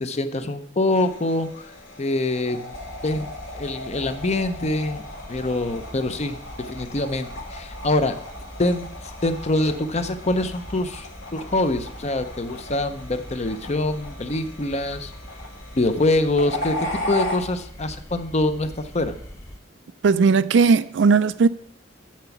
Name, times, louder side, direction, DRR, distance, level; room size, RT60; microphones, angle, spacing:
voice 1, 0.0-1.7 2.0-2.8 3.0-3.3 3.5-5.0 5.3-8.1 8.6-15.1 15.8-19.1, left 2 dB, 35° left, 0.7 m, -25 dB
sound 1, 0.9-17.4, left 1 dB, 85° left, 1.9 m, -36 dB
sound 2, 2.7-19.6, equal, 15° left, 1.2 m, -42 dB
voice 2, 20.0-21.5, right 5 dB, 65° right, 0.4 m, -17 dB
7.5 x 5.9 x 7.1 m
head